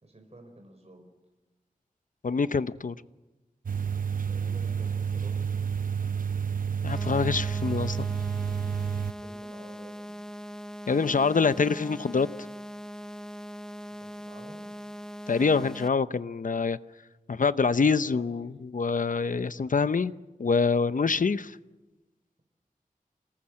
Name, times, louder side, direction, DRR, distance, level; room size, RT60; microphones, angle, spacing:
voice 1, 0.0-1.1 4.3-5.5 9.2-10.1 14.0-14.7 17.7-18.6 19.2-19.9, right 1 dB, 45° right, 4 dB, 5.0 m, -51 dB
voice 2, 2.2-2.9 6.8-8.1 10.9-12.3 15.3-16.8 17.3-20.1 20.4-21.6, left 5 dB, 65° left, 14 dB, 0.8 m, -25 dB
sound 1, 3.7-9.1, right 7 dB, 70° right, 0.8 m, -30 dB
sound 2, 6.9-15.9, equal, 5° left, 0.7 m, -41 dB
27.5 x 19.0 x 7.7 m, 1.1 s
wide cardioid pair, 60°, 15 cm